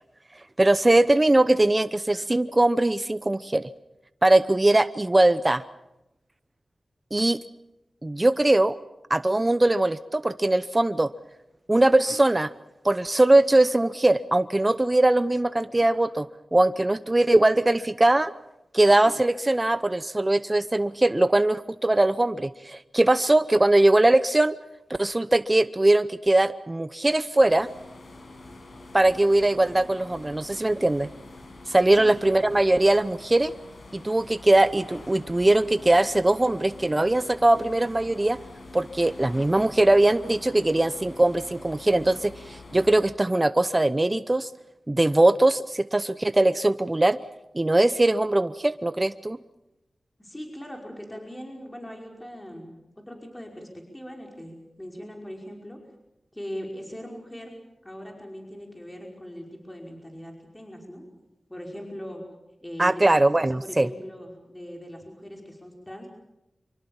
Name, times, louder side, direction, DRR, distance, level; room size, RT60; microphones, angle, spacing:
voice 1, 0.6-3.7 4.2-5.6 7.1-7.4 8.0-8.8 9.1-11.1 11.7-12.5 12.8-16.3 16.5-18.3 18.7-24.6 25.0-27.7 28.9-31.1 31.7-33.5 33.9-38.4 38.7-44.5 44.9-47.2 47.5-49.4 62.8-63.9, right 2 dB, 30° right, 13 dB, 0.8 m, -21 dB
sound 1, 27.4-43.0, left 2 dB, 70° left, 6.0 m, -45 dB
voice 2, 50.2-52.8 53.1-55.8 56.3-61.1 61.5-62.2 62.6-63.0 63.4-66.1, equal, 15° left, 1 dB, 5.4 m, -40 dB
25.5 x 24.0 x 7.3 m, 0.92 s
cardioid pair, 40°, 0 cm